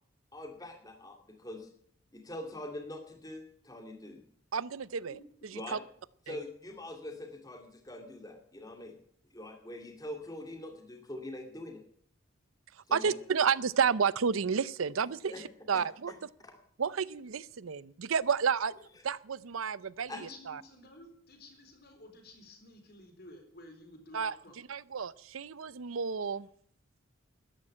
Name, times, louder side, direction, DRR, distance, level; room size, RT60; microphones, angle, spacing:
voice 1, 0.3-1.7 2.1-4.2 5.5-5.8 6.3-9.0 9.3-11.8 12.9-13.1 15.2-15.4 15.7-15.8 16.1-16.2 16.4-16.6 20.1-20.2, left 1 dB, 20° left, 4 dB, 2.4 m, -43 dB
voice 2, 4.5-5.2 5.5-5.8 6.3-6.4 12.9-15.3 15.7-16.1 16.8-18.7 19.0-20.6 24.1-24.3 24.7-26.5, right 6 dB, 85° right, 19 dB, 0.6 m, -31 dB
voice 3, 20.1-24.6, left 1 dB, 50° left, 5 dB, 3.8 m, -52 dB
13.5 x 11.0 x 8.7 m, 0.63 s
head